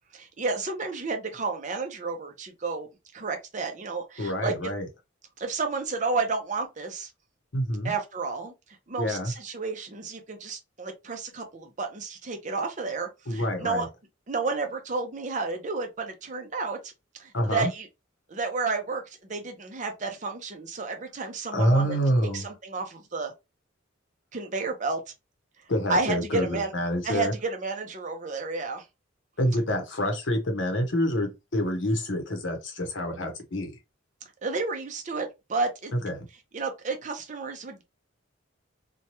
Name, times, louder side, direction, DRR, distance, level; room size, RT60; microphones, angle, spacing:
voice 1, 0.1-2.9 3.1-4.5 5.4-7.1 7.8-8.5 8.9-13.9 14.3-16.9 17.2-17.9 18.3-22.0 22.3-23.3 24.3-25.0 25.9-26.7 27.0-28.8 34.4-35.9 36.5-37.8, right 4 dB, 40° right, 0.6 m, -31 dB
voice 2, 4.2-4.9 7.5-7.9 9.0-9.3 13.3-13.9 17.3-17.7 21.5-22.5 25.7-27.3 29.4-33.8 35.9-36.3, equal, 65° left, 0.8 m, -27 dB
3.0 x 2.2 x 2.8 m
head